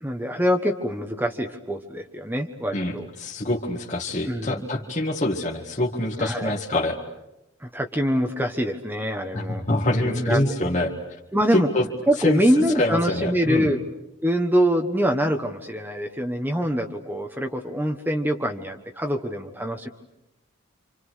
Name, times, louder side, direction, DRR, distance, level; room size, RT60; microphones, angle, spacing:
voice 1, 0.0-3.1 4.3-4.7 6.2-6.5 7.6-9.6 10.0-10.5 11.3-11.7 12.1-13.8 14.2-19.9, equal, 10° right, 3 dB, 1.3 m, -24 dB
voice 2, 2.7-7.0 9.3-10.9 11.5-11.9 12.2-12.4 12.7-13.7, left 1 dB, 35° left, -1 dB, 2.1 m, -25 dB
28.5 x 27.5 x 6.5 m, 0.92 s
head